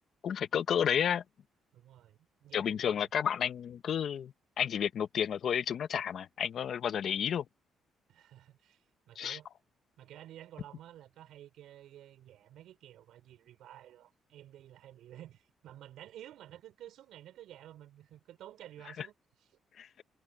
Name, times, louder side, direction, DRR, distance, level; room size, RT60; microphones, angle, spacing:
voice 1, 0.2-1.2 2.5-7.4 9.1-9.4 19.0-19.1 19.8-19.9, left 8 dB, 60° left, 1.2 m, -31 dB
voice 2, 1.7-3.0 8.1-9.5 10.0-19.1, right 12 dB, 80° right, 5.3 m, -52 dB
cardioid pair, 90°, 0 cm